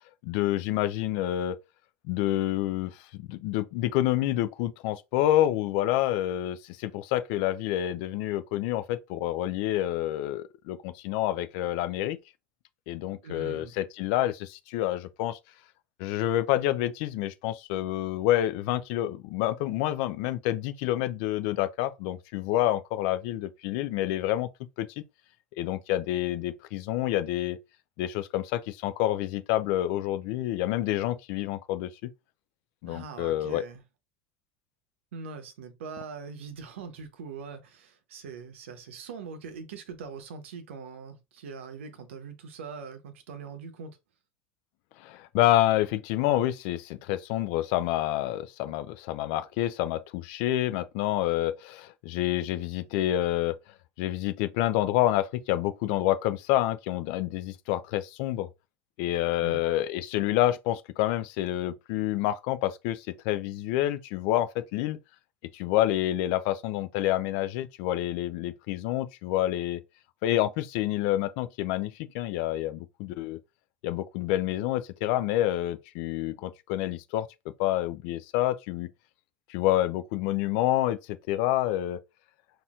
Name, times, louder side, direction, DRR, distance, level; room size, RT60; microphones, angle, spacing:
voice 1, 0.2-1.6 2.1-12.2 12.9-15.4 16.0-24.5 24.8-24.9 25.6-27.6 28.0-32.1 32.8-33.6 45.0-53.6 54.0-58.5 59.0-65.0 65.5-69.8 70.2-73.4 73.8-77.3 77.6-78.9 79.5-82.0, left 14 dB, 65° left, 0.5 m, -28 dB
voice 2, 13.2-13.7 32.8-33.8 35.1-44.0 59.4-59.6, right 5 dB, 85° right, 0.8 m, -42 dB
4.1 x 2.7 x 2.4 m
hypercardioid pair, 90°, 7 cm